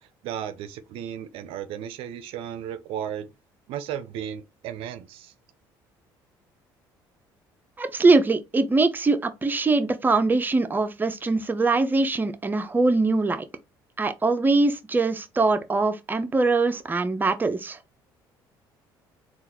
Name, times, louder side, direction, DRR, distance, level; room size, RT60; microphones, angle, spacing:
voice 1, 0.0-3.3 3.7-5.3, right 9 dB, 70° right, 0.4 m, -35 dB
voice 2, 7.8-13.4 14.0-17.8, right 3 dB, 20° right, 0.5 m, -22 dB
3.7 x 2.4 x 2.9 m
supercardioid pair, 75°, 10 cm